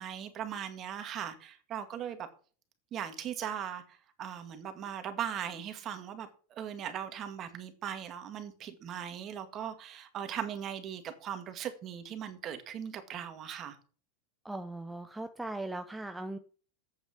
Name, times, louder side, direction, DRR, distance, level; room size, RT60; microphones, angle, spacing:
voice 1, 0.0-2.3 2.9-13.8, right 9 dB, 35° right, 2.0 m, -39 dB
voice 2, 14.4-16.4, right 2 dB, 5° right, 0.7 m, -39 dB
8.3 x 7.0 x 7.2 m
supercardioid pair, 135°, 0 cm